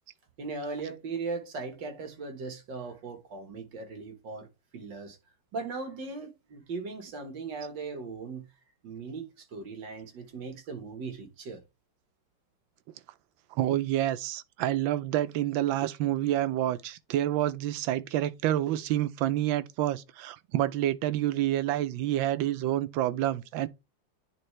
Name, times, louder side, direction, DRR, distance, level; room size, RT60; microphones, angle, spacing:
voice 1, 0.4-4.5 4.7-5.2 5.5-8.5 8.8-11.6, right 4 dB, 70° right, 2.1 m, -38 dB
voice 2, 13.5-23.7, right 13 dB, 90° right, 1.3 m, -28 dB
9.8 x 3.3 x 3.1 m
omnidirectional pair, 2.1 m